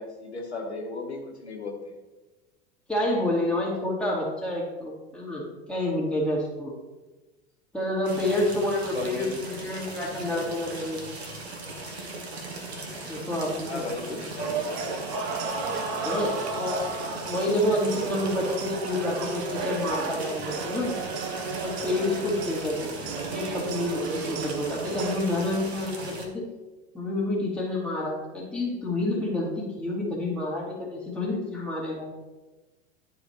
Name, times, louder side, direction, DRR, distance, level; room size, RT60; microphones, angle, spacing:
voice 1, 0.0-1.8 8.9-9.3 13.6-14.8, left 3 dB, 85° left, 1 dB, 1.2 m, -35 dB
voice 2, 2.9-6.7 7.7-11.1 13.1-13.8 14.1-14.2 16.0-16.8 17.2-20.9 21.6-26.4 26.9-32.1, left 1 dB, 5° left, -4 dB, 2.4 m, -29 dB
sound 1, 8.0-26.3, right 2 dB, 75° right, 1.3 m, -39 dB
sound 2, 14.4-25.2, right 4 dB, 45° right, 0.9 m, -33 dB
11.0 x 4.9 x 2.9 m, 1.2 s
figure-of-eight pair, 80°, 32 cm